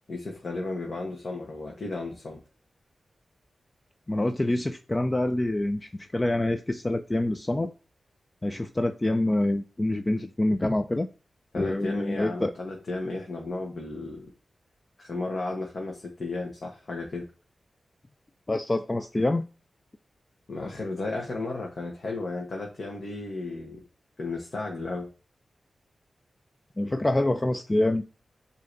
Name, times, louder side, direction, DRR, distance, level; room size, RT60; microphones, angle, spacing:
voice 1, 0.1-2.4 11.5-14.3 15.0-17.3 20.5-23.8 24.2-25.1, left 2 dB, 55° left, 1.1 m, -34 dB
voice 2, 4.1-7.7 8.4-11.1 11.6-12.5 18.5-19.5 26.8-28.1, left 1 dB, 25° left, 0.3 m, -26 dB
7.5 x 2.8 x 2.5 m
cardioid pair, 70°, 0 cm